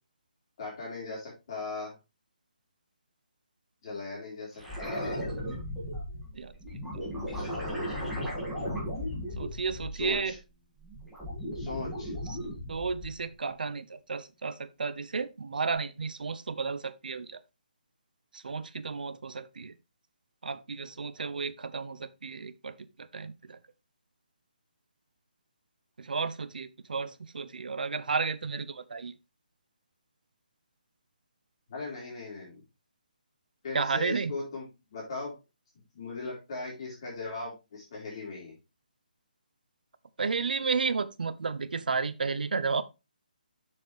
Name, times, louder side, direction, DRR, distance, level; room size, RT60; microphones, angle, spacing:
voice 1, 0.6-1.9 3.8-5.3 7.3-8.3 9.9-10.4 11.5-12.1 31.7-32.6 33.6-35.4 35.9-38.5, left 3 dB, 35° left, 3.9 m, -39 dB
sound 1, 4.6-10.4 10.8-13.3 15.7-15.8, equal, ahead, 2.1 m, -36 dB
voice 2, 9.4-10.3 12.7-17.4 18.4-19.7 20.4-22.7 23.1-23.6 26.0-29.1 33.7-34.3 40.2-42.8, right 4 dB, 70° right, 0.8 m, -32 dB
7.0 x 6.5 x 3.3 m
hypercardioid pair, 170°, 5 cm